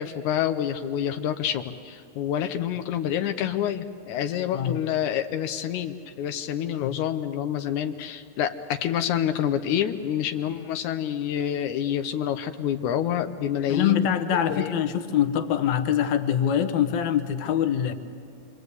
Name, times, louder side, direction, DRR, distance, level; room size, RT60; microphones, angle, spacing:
voice 1, 0.0-14.1 14.5-14.7, left 10 dB, 90° left, 7 dB, 2.3 m, -27 dB
voice 2, 13.7-17.9, left 9 dB, 70° left, 9 dB, 2.4 m, -24 dB
27.0 x 24.5 x 8.2 m, 2.4 s
omnidirectional pair, 3.4 m